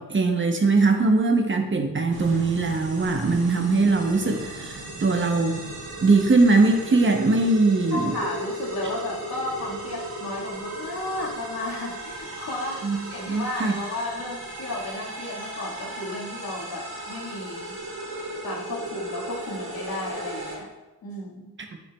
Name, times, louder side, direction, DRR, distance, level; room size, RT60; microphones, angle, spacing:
voice 1, 0.0-5.7 6.0-8.1 12.8-13.0 13.3-13.7, right 3 dB, 30° right, 5 dB, 0.8 m, -21 dB
sound 1, 2.1-20.5, right 1 dB, 70° right, 2.0 m, -36 dB
voice 2, 7.9-12.8 13.1-17.7 18.4-20.7 21.0-21.5, left 2 dB, 70° left, -3 dB, 1.9 m, -33 dB
7.9 x 5.8 x 2.3 m, 1.1 s
cardioid pair, 80°, 37 cm